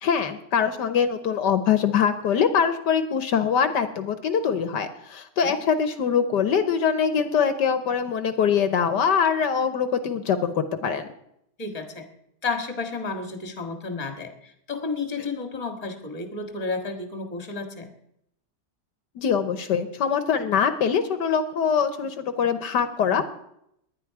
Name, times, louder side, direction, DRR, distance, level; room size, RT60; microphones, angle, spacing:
voice 1, 0.0-11.1 19.1-23.3, left 7 dB, 70° left, 10 dB, 1.5 m, -23 dB
voice 2, 11.6-12.1 12.4-17.9, left 3 dB, 20° left, 6 dB, 1.6 m, -32 dB
19.0 x 11.0 x 4.8 m, 0.76 s
omnidirectional pair, 2.0 m